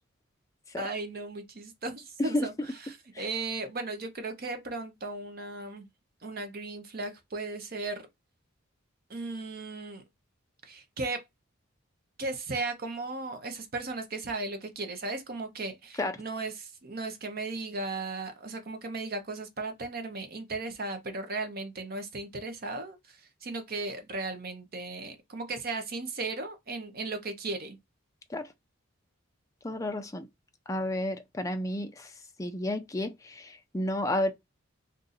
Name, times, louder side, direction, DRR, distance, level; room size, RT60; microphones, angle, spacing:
voice 1, 0.8-5.9 6.2-8.0 9.1-10.0 10.6-11.2 12.2-27.8, right 3 dB, 45° right, 0.7 m, -36 dB
voice 2, 29.6-30.3 30.7-32.1 32.4-34.3, left 1 dB, 15° left, 0.4 m, -31 dB
2.6 x 2.5 x 4.0 m
head